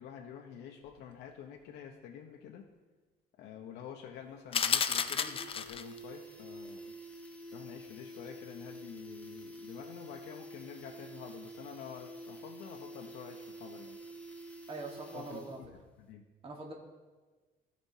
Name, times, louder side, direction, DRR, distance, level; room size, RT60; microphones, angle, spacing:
voice 1, 0.0-2.6 3.4-6.9 7.5-14.0 15.1-15.7 16.0-16.3, left 8 dB, 80° left, 1 dB, 0.8 m, -48 dB
sound 1, 4.2-4.3 4.5-4.6 4.9-15.8 16.0-16.1, right 1 dB, 10° left, 1.1 m, -48 dB
sound 2, 4.5-6.0, left 7 dB, 35° left, 0.4 m, -31 dB
voice 2, 14.7-15.6 16.4-16.7, right 3 dB, 35° right, 0 dB, 1.4 m, -43 dB
14.5 x 5.1 x 2.7 m, 1.3 s
cardioid pair, 110°, 17 cm